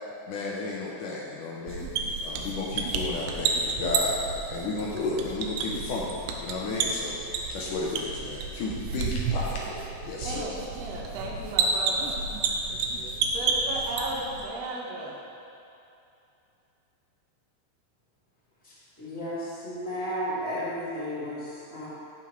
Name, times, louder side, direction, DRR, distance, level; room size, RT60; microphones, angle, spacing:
voice 1, 0.3-1.9 2.2-4.2 4.5-10.4, left 3 dB, 80° left, -3 dB, 1.8 m, -33 dB
sound 1, 1.7-14.4, right 4 dB, 85° right, 1.9 m, -30 dB
voice 2, 10.2-12.1 13.2-15.2, right 2 dB, 70° right, -4 dB, 1.6 m, -35 dB
voice 3, 18.6-21.9, equal, 25° right, -13 dB, 1.8 m, -33 dB
16.0 x 5.8 x 3.2 m, 2.7 s
omnidirectional pair, 4.7 m